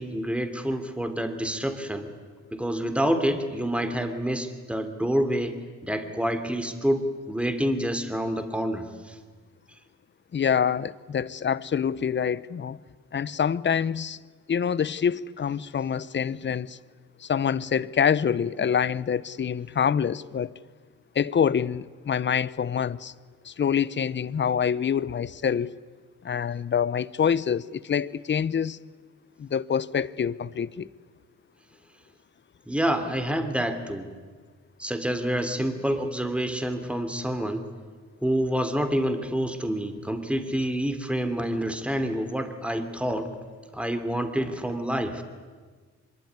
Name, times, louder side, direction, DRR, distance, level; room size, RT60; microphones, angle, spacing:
voice 1, 0.0-2.1 2.5-9.2 32.7-34.1 34.8-37.7 38.2-43.3 43.7-45.2, equal, 5° right, 3.0 m, -28 dB
voice 2, 10.3-12.8 13.1-14.2 14.5-16.8 17.2-20.5 21.1-23.1 23.4-25.7 26.2-28.8 29.4-30.9, left 7 dB, 40° left, 0.8 m, -26 dB
24.5 x 23.0 x 9.6 m
cardioid pair, 90°, 30 cm